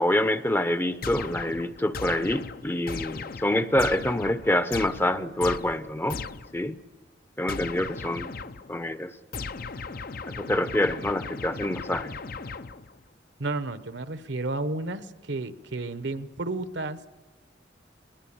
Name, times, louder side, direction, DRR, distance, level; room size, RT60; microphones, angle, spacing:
voice 1, 0.0-6.2 6.5-6.8 7.4-8.3 8.7-9.1 10.4-12.1, left 1 dB, 10° left, 12 dB, 0.7 m, -26 dB
sound 1, 1.0-6.6 7.5-8.8 9.3-13.0, left 4 dB, 55° left, 0.7 m, -37 dB
voice 2, 13.4-17.0, right 2 dB, 75° right, 11 dB, 1.1 m, -32 dB
21.0 x 20.5 x 8.8 m, 1.2 s
head